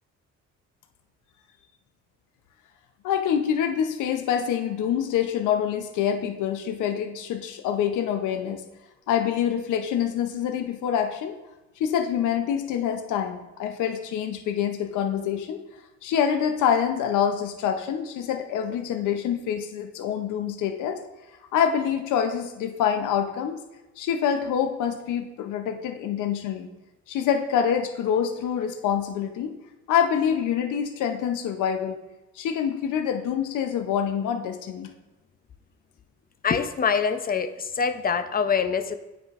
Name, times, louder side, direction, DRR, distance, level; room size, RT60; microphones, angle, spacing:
voice 1, 3.0-8.6 9.1-11.4 11.8-15.6 16.0-21.0 21.5-23.6 24.0-26.7 27.1-29.6 29.9-32.0 32.4-34.9, left 8 dB, 80° left, 6 dB, 0.6 m, -26 dB
voice 2, 36.4-39.0, left 6 dB, 30° left, 10 dB, 0.5 m, -25 dB
9.1 x 5.0 x 2.4 m, 1.0 s
cardioid pair, 90°, 30 cm